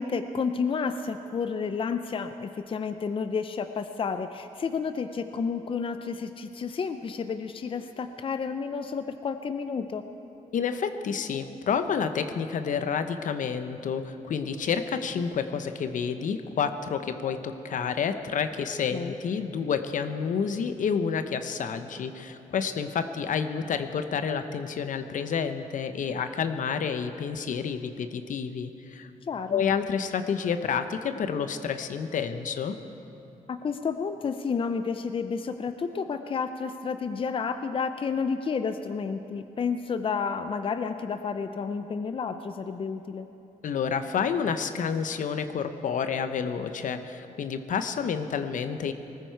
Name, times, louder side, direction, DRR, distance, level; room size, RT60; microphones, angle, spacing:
voice 1, 0.0-10.0 18.9-19.1 29.3-29.6 33.5-43.3, left 5 dB, 40° left, 9 dB, 0.6 m, -31 dB
voice 2, 10.5-29.1 29.5-32.8 43.6-48.9, left 6 dB, 70° left, 9 dB, 0.8 m, -29 dB
20.0 x 14.0 x 4.6 m, 2.9 s
cardioid pair, 100°, 14 cm